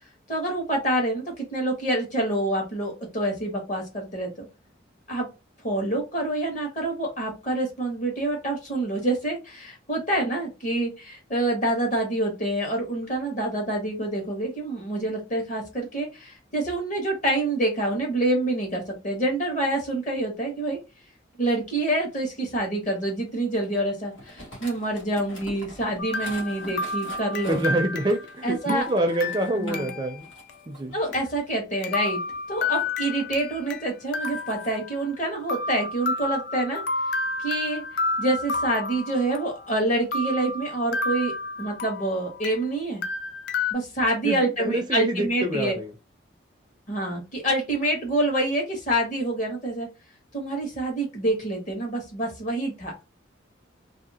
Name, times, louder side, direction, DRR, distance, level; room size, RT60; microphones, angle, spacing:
voice 1, 0.3-4.5 5.1-5.3 5.6-20.8 21.4-27.7 28.4-28.8 29.6-29.9 30.9-32.2 32.5-36.8 37.4-37.8 38.2-41.3 41.6-43.0 43.7-45.7 46.9-49.9 50.3-52.9, right 1 dB, 40° left, 1.2 m, -27 dB
sound 1, 23.0-29.9 30.2-31.2 31.9-33.4 34.1-34.8, left 1 dB, 85° left, 1.4 m, -45 dB
sound 2, 26.0-30.2 30.5-30.6 31.1-31.2 31.8-33.8 34.1-35.2 35.5-39.7 40.1-42.7 43.0-43.7, left 3 dB, 55° left, 0.4 m, -31 dB
voice 2, 27.5-30.3 30.7-30.9 44.2-45.9, right 1 dB, 20° right, 0.4 m, -26 dB
2.7 x 2.6 x 2.7 m
head